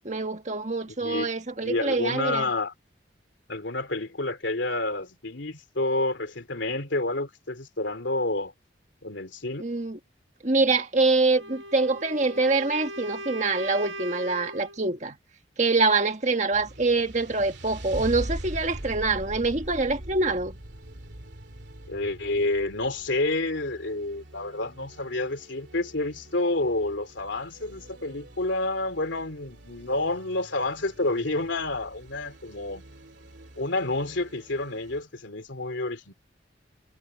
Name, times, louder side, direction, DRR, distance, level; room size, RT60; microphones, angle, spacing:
voice 1, 0.0-2.5 9.6-10.0 10.4-15.2 15.6-20.6, right 3 dB, 40° right, 1.6 m, -25 dB
voice 2, 1.0-2.7 3.5-8.5 9.0-9.6 21.9-32.8 33.6-36.1, left 2 dB, 75° left, 2.8 m, -29 dB
Wind instrument woodwind instrument, 11.3-14.8, right 1 dB, 90° right, 1.5 m, -39 dB
sound 1, 16.5-35.0, right 1 dB, 65° right, 2.6 m, -43 dB
head